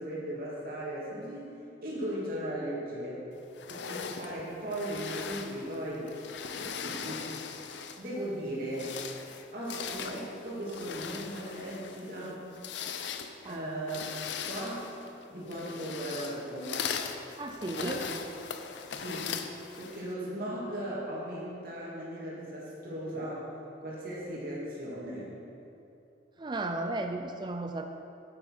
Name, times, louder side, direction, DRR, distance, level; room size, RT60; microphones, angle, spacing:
voice 1, 0.0-1.5 1.8-3.2 3.7-6.1 6.6-7.3 8.0-8.9 9.5-12.5 13.5-14.0 14.4-14.9 15.3-16.9 17.8-18.1 18.9-19.3 19.8-23.5 23.8-25.3, right 1 dB, 50° right, -6 dB, 2.5 m, -37 dB
sound 1, 3.6-8.1 8.6-20.1, left 6 dB, 75° left, 0.5 m, -39 dB
voice 2, 17.4-18.0 26.4-27.9, right 2 dB, 25° right, 5 dB, 0.4 m, -34 dB
8.7 x 7.9 x 5.0 m, 2.7 s
head